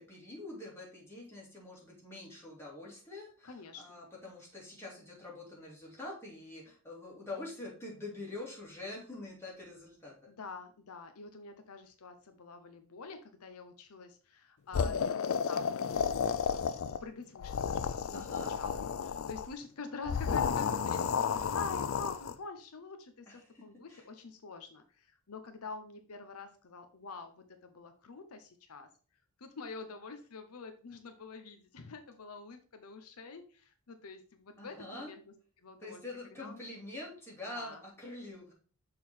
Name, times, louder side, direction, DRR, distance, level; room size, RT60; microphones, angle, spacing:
voice 1, 0.0-10.3 18.1-18.5 23.3-23.6 23.9-24.0 34.6-35.1 35.8-38.5, left 2 dB, 10° left, -4 dB, 2.5 m, -45 dB
voice 2, 3.4-4.0 10.3-28.9 29.4-35.2 35.6-36.6 37.5-37.8, left 4 dB, 80° left, 7 dB, 0.7 m, -47 dB
sound 1, 14.7-17.0 17.3-19.5 20.0-22.3, left 6 dB, 65° left, 0.4 m, -32 dB
6.5 x 3.8 x 4.3 m, 0.40 s
head